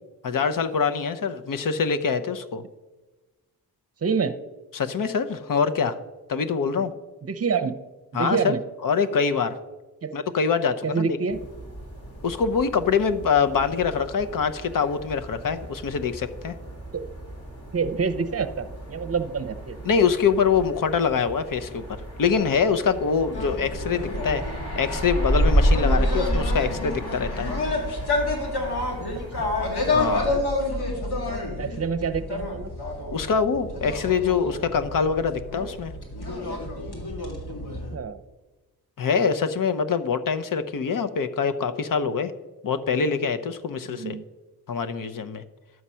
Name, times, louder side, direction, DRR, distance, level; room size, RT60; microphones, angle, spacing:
voice 1, 0.2-2.6 4.7-6.0 6.3-6.9 8.1-8.6 8.8-9.6 10.1-11.2 12.2-16.5 19.8-21.8 22.2-24.4 24.8-27.5 29.9-30.3 33.1-35.9 39.0-42.3 42.6-44.2 44.7-45.4, left 6 dB, 60° left, 11 dB, 0.8 m, -24 dB
voice 2, 4.0-4.4 7.2-7.8 8.1-8.6 10.0-10.2 10.8-11.4 16.9-17.0 17.7-19.9 29.4-29.5 31.2-32.7 37.9-38.2 43.9-44.3, right 5 dB, 40° right, 11 dB, 0.7 m, -27 dB
sound 1, 11.3-30.2, equal, 40° left, 3.3 m, -30 dB
sound 2, 23.3-38.0, left 2 dB, 80° left, 2.3 m, -29 dB
11.0 x 7.4 x 5.6 m, 1.2 s
wide cardioid pair, 120°, 38 cm